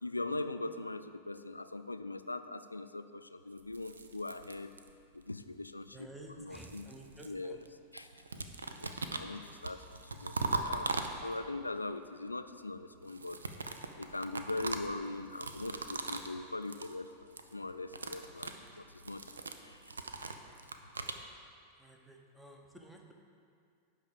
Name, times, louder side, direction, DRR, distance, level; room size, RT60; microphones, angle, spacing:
voice 1, 0.0-4.8 5.1-6.8 7.2-7.6 7.9-8.4 8.8-13.4 14.0-20.0, left 2 dB, 80° left, 11 dB, 0.3 m, -41 dB
sound 1, 3.6-5.2 6.1-7.7 8.0-11.6 13.0-16.4 16.6-17.0 17.2-17.5 17.8-21.2, right 3 dB, 75° right, 0.5 m, -40 dB
voice 2, 5.9-7.6 21.8-23.1, right 1 dB, 5° right, 1 dB, 0.9 m, -52 dB
10.5 x 3.7 x 6.7 m, 2.3 s
figure-of-eight pair, 90°, 0 cm